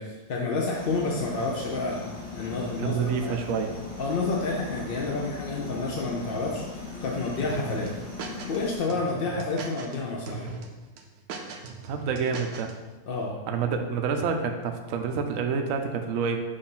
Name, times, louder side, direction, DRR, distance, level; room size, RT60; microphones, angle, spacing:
voice 1, 0.0-2.0 2.4-3.4 4.0-7.9 8.5-10.5 13.1-13.4, left 3 dB, 50° left, -2 dB, 0.7 m, -29 dB
sound 1, 0.7-8.8, left 3 dB, 35° left, 1.9 m, -39 dB
voice 2, 2.8-3.7 11.8-12.7 13.5-16.4, right 5 dB, 70° right, 4 dB, 0.9 m, -28 dB
sound 2, 7.5-8.6 8.9-10.0 10.3-10.7 11.0-12.7, right 4 dB, 85° right, 1.2 m, -38 dB
6.7 x 2.6 x 5.4 m, 1.2 s
omnidirectional pair, 1.6 m